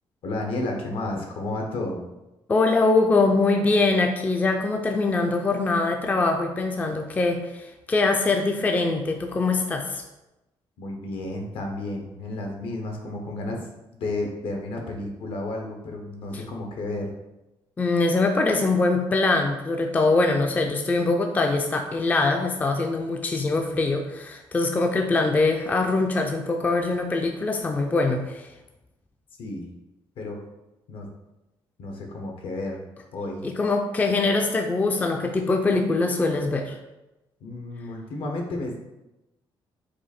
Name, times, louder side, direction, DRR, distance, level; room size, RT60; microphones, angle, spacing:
voice 1, 0.2-2.0 10.8-13.7 13.9-17.1 29.4-29.7 30.2-30.4 30.9-31.1 31.8-32.8 33.1-33.4 37.4-38.8, left 2 dB, 75° left, 2 dB, 1.0 m, -32 dB
voice 2, 2.5-10.0 16.3-16.4 17.8-28.5 33.4-36.8, left 3 dB, 20° left, 4 dB, 0.3 m, -23 dB
4.8 x 2.5 x 4.2 m, 0.97 s
cardioid pair, 145°, 9 cm